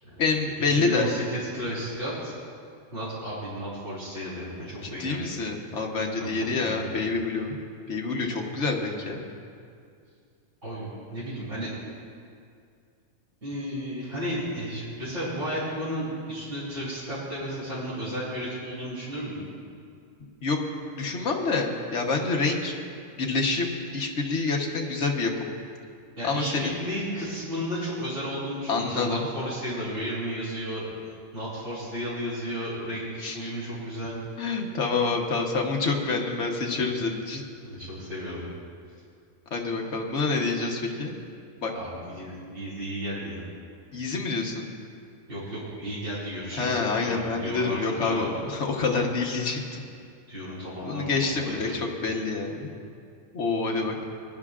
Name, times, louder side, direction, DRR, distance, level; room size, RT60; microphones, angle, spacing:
voice 1, 0.2-1.2 4.8-7.6 7.9-9.3 20.4-20.6 21.0-22.7 23.2-25.5 26.2-26.8 28.7-29.3 33.2-33.5 34.4-37.4 39.5-41.1 41.6-41.7 43.9-44.6 46.5-49.8 50.8-52.7 53.3-54.0, left 4 dB, 65° left, 0 dB, 1.5 m, -27 dB
voice 2, 0.7-2.3 2.9-5.2 6.2-6.9 10.6-11.7 13.4-19.4 26.2-30.8 31.3-34.2 37.6-38.5 41.7-43.4 45.3-48.3 50.3-51.7, equal, 85° right, -12 dB, 4.1 m, -33 dB
22.0 x 11.0 x 2.5 m, 2.3 s
omnidirectional pair, 1.3 m